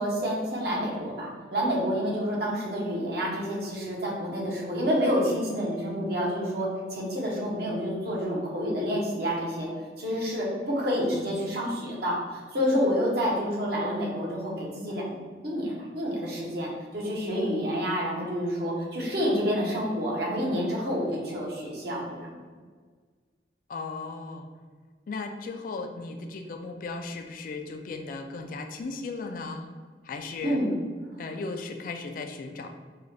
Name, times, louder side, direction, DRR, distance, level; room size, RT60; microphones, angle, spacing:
voice 1, 0.0-9.7 10.0-15.2 15.4-22.3 30.4-30.7, equal, 60° right, -3 dB, 1.0 m, -28 dB
voice 2, 23.7-24.5 25.1-29.7 30.0-30.6 31.2-32.7, left 3 dB, 50° left, 5 dB, 0.3 m, -36 dB
3.7 x 2.3 x 3.3 m, 1.5 s
head